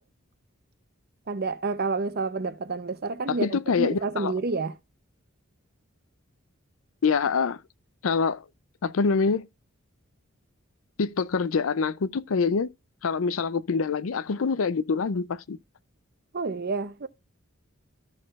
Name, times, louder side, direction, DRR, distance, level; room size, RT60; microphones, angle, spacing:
voice 1, 1.3-4.7 16.3-17.1, right 3 dB, 50° right, 0.7 m, -29 dB
voice 2, 3.3-4.3 7.0-7.6 8.0-8.4 8.8-9.5 11.0-12.7 13.0-15.6, left 5 dB, 75° left, 0.5 m, -25 dB
14.0 x 6.6 x 2.4 m
head